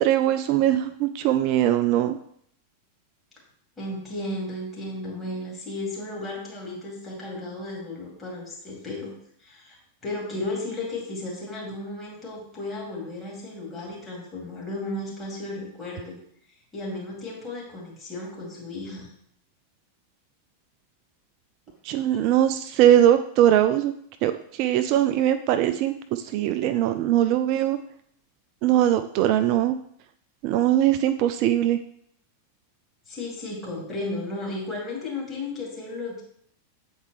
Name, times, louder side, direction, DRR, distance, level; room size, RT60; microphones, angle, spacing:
voice 1, 0.0-2.2 21.8-23.9 24.2-27.8 28.6-29.8 30.4-31.8, right 12 dB, 45° right, 10 dB, 0.3 m, -21 dB
voice 2, 3.8-9.1 9.4-9.8 10.0-16.2 16.7-19.1 33.1-36.2, left 2 dB, 15° left, -3 dB, 2.4 m, -34 dB
8.1 x 4.4 x 3.1 m, 0.66 s
figure-of-eight pair, 90°, 0 cm